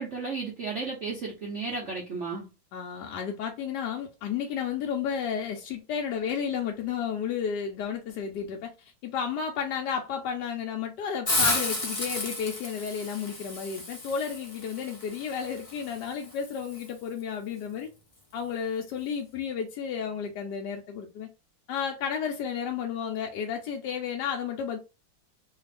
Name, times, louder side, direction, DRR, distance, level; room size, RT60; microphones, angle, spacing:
voice 1, 0.0-2.5, right 4 dB, 65° right, 0.7 m, -33 dB
voice 2, 2.7-17.9 18.3-21.3 21.7-24.8, left 7 dB, 70° left, 1.1 m, -32 dB
Hiss, 11.2-16.9, left 2 dB, 40° left, 0.4 m, -32 dB
3.3 x 2.4 x 3.3 m
omnidirectional pair, 2.3 m